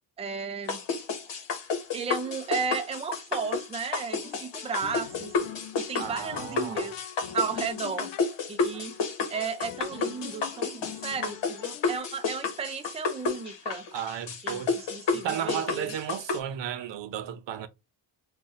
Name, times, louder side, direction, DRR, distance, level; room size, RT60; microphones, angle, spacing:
voice 1, 0.2-0.8 1.9-5.3 5.7-7.0 7.3-8.1 8.5-9.0 9.3-13.8 14.4-15.9, right 5 dB, 15° right, 0.4 m, -34 dB
sound 1, 0.7-16.4, left 4 dB, 65° left, 1.1 m, -31 dB
sound 2, 3.4-3.8 4.2-8.4 8.7-9.1 9.3-12.0, left 10 dB, 90° left, 0.6 m, -44 dB
voice 2, 6.0-6.9 13.9-14.8 15.1-17.7, right 9 dB, 65° right, 0.6 m, -34 dB
3.9 x 2.4 x 2.4 m
cardioid pair, 110°, 47 cm